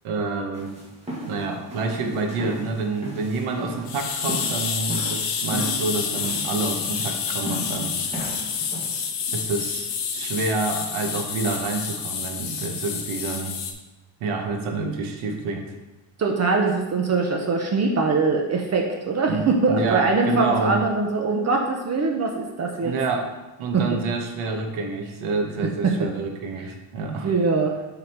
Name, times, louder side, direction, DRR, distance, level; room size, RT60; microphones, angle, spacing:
voice 1, 0.0-0.8 1.3-8.0 9.3-13.6 14.2-15.7 19.3-20.8 22.8-23.3 23.6-27.3, right 3 dB, 85° right, 3 dB, 1.3 m, -28 dB
sound 1, 0.5-9.0, right 1 dB, 15° right, 1.7 m, -36 dB
sound 2, 3.9-13.7, left 6 dB, 55° left, 1.0 m, -29 dB
voice 2, 16.2-22.9 25.8-25.9 27.2-27.7, right 3 dB, 35° right, 1 dB, 0.7 m, -22 dB
7.5 x 3.9 x 4.4 m, 1.1 s
cardioid pair, 155°, 48 cm